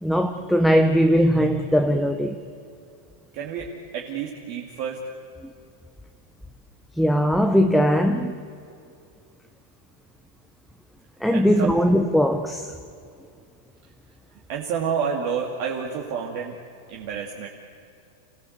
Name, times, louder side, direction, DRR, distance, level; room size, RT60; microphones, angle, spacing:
voice 1, 0.0-2.4 7.0-8.4 11.2-12.7, equal, ahead, 5 dB, 0.8 m, -20 dB
voice 2, 3.3-5.0 11.3-11.8 14.5-16.6 16.9-17.5, right 7 dB, 50° right, -1 dB, 2.4 m, -29 dB
28.5 x 17.0 x 8.1 m, 2.4 s
supercardioid pair, 160°, 0 cm